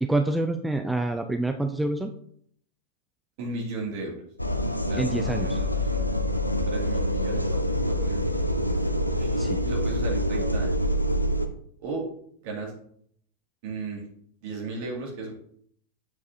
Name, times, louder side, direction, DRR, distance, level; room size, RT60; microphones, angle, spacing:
voice 1, 0.0-2.1 5.0-5.6 9.4-9.6, right 2 dB, 5° right, 6 dB, 0.4 m, -27 dB
voice 2, 3.4-4.2 4.8-6.1 6.7-7.4 8.0-8.5 9.2-10.8 11.8-12.1 12.4-12.7 13.6-14.1 14.4-15.3, right 3 dB, 50° right, 0 dB, 1.9 m, -35 dB
sound 1, 4.4-11.5, equal, 85° left, 0.5 m, -26 dB
8.2 x 4.8 x 2.5 m, 0.65 s
figure-of-eight pair, 90°, 0 cm